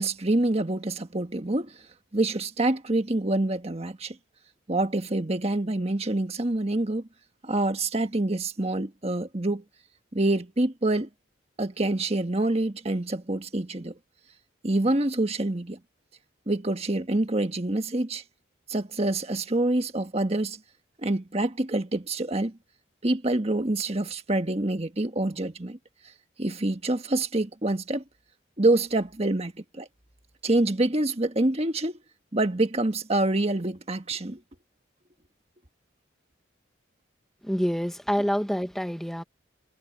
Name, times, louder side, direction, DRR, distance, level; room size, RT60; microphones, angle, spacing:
voice 1, 0.0-1.8 2.1-4.2 4.7-7.1 7.4-9.6 10.1-11.1 11.6-14.0 14.6-15.8 16.5-18.2 18.7-20.6 21.0-22.6 23.0-25.8 26.4-28.0 28.6-29.9 30.4-32.0 32.3-34.4, right 2 dB, 30° right, 1.5 m, -26 dB
voice 2, 37.4-39.2, equal, ahead, 1.6 m, -27 dB
head